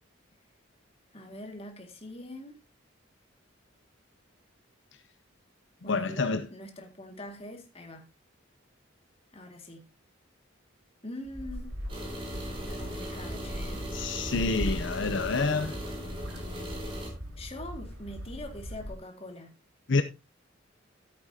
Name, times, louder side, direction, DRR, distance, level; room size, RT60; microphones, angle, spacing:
voice 1, 1.1-2.6 5.8-8.1 9.3-9.8 11.0-11.7 12.7-13.9 17.4-19.5, left 1 dB, 30° left, 2.1 m, -43 dB
voice 2, 5.8-6.4 13.9-15.8 19.9-20.0, left 3 dB, 65° left, 0.6 m, -28 dB
sound 1, 11.3-19.0, equal, 90° right, 4.3 m, -39 dB
sound 2, 11.9-17.1, equal, 25° right, 4.1 m, -39 dB
13.5 x 8.6 x 2.8 m
head